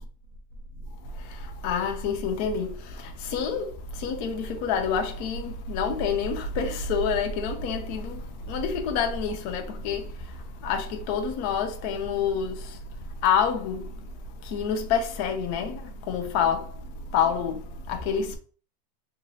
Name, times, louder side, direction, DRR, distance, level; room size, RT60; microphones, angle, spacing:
voice 1, 1.0-18.4, left 6 dB, 70° left, 1.0 m, -28 dB
3.7 x 2.9 x 2.7 m
omnidirectional pair, 2.1 m